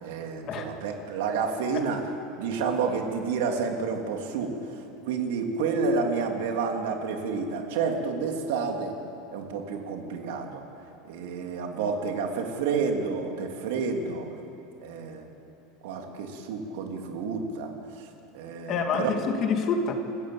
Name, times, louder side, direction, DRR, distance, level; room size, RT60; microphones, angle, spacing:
voice 1, 0.0-2.0 2.4-8.9 9.3-10.6 11.0-14.3 14.8-15.3 15.8-18.1 18.3-19.1, right 5 dB, 70° right, 2 dB, 3.1 m, -30 dB
voice 2, 18.7-19.9, left 5 dB, 30° left, 4 dB, 2.0 m, -27 dB
28.5 x 14.5 x 8.7 m, 2.8 s
supercardioid pair, 175°, 0 cm